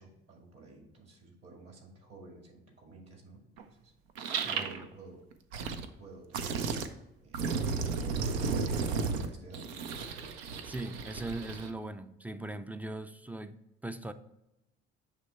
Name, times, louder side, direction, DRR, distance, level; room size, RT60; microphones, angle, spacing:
voice 1, 0.0-3.9 4.5-5.2 5.7-6.9 7.2-9.6, right 3 dB, 50° right, 2.1 m, -52 dB
sound 1, 3.6-3.7 4.1-4.8 5.3-5.8 6.3-6.9 7.3-11.7, right 5 dB, 80° right, 0.5 m, -33 dB
voice 2, 10.6-13.6 13.8-14.1, right 2 dB, 5° right, 0.3 m, -39 dB
7.1 x 3.2 x 4.3 m
hypercardioid pair, 50°, 31 cm